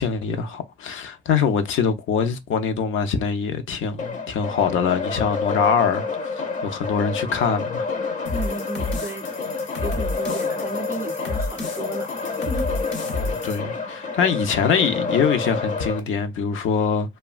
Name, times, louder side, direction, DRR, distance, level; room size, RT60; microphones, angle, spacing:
voice 1, 0.0-7.9 13.1-17.2, left 6 dB, 85° left, 0.5 m, -24 dB
sound 1, 4.0-16.0, left 4 dB, 40° left, 0.5 m, -28 dB
sound 2, 8.3-13.6, left 2 dB, 70° left, 0.8 m, -31 dB
voice 2, 8.3-9.3 9.6-13.1, right 3 dB, 15° right, 0.4 m, -35 dB
2.9 x 2.2 x 2.4 m
wide cardioid pair, 160°, 20 cm